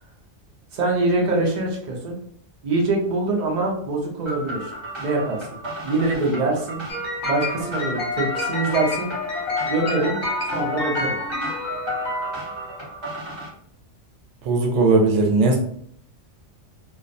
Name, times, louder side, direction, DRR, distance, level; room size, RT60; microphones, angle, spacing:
voice 1, 0.7-2.2 2.6-4.7 5.0-5.6 5.8-6.8 7.3-9.1 9.7-10.2 10.5-11.2, right 2 dB, 50° right, -1 dB, 0.6 m, -24 dB
sound 1, 4.3-13.5, equal, 25° right, 1.0 m, -33 dB
sound 2, 6.9-12.9, left 2 dB, 50° left, 0.9 m, -29 dB
voice 2, 14.4-15.6, right 3 dB, 85° right, 2 dB, 0.9 m, -18 dB
2.3 x 2.1 x 2.5 m, 0.64 s
omnidirectional pair, 1.2 m